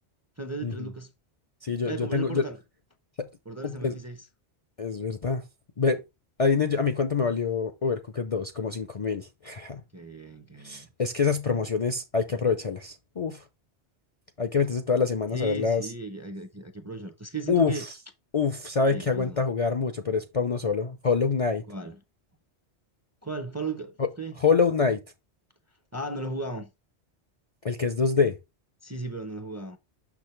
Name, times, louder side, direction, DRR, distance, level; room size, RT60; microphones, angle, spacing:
voice 1, 0.4-1.1 1.8-2.6 3.5-4.3 9.9-10.9 15.3-17.9 18.9-19.4 21.7-22.0 23.2-24.4 25.9-26.7 28.8-29.8, right 3 dB, 20° right, 0.5 m, -36 dB
voice 2, 1.6-2.4 3.2-3.3 3.6-4.0 4.8-5.4 5.8-6.0 6.4-9.8 10.6-13.4 14.4-15.8 17.5-17.8 18.3-21.6 24.4-25.0 27.6-28.4, left 5 dB, 45° left, 0.5 m, -26 dB
6.4 x 6.1 x 3.2 m
omnidirectional pair, 1.2 m